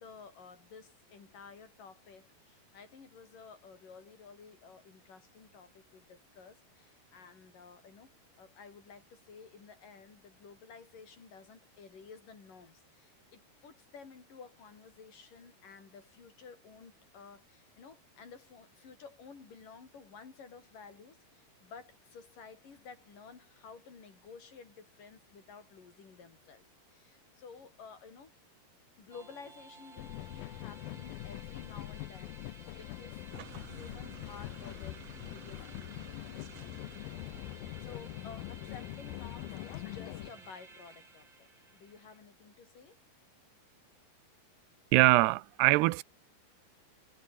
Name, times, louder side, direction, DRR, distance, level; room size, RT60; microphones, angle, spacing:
voice 1, 0.0-8.1 8.4-28.3 29.0-33.3 33.6-36.2 37.2-43.0, left 5 dB, 55° left, 6.5 m, -53 dB
sound 1, 29.1-42.2, right 3 dB, 30° right, 5.2 m, -55 dB
sound 2, 30.0-40.3, left 19 dB, 80° left, 2.3 m, -43 dB
sound 3, 33.3-40.5, right 11 dB, 60° right, 1.7 m, -55 dB
voice 2, 44.9-46.0, right 21 dB, 85° right, 2.7 m, -23 dB
omnidirectional pair, 4.6 m